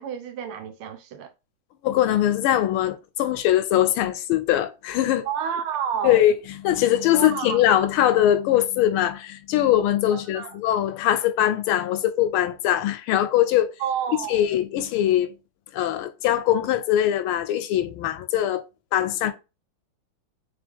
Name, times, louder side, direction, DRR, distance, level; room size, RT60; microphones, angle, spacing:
voice 1, 0.0-1.3 5.2-6.2 7.1-7.6 10.1-10.5 13.8-14.5, right 8 dB, 90° right, 1.6 m, -30 dB
voice 2, 1.8-5.3 6.0-6.3 6.6-13.7 14.3-15.3 15.7-18.6 18.9-19.3, left 12 dB, 90° left, 1.5 m, -21 dB
3.6 x 3.5 x 3.5 m
omnidirectional pair, 2.3 m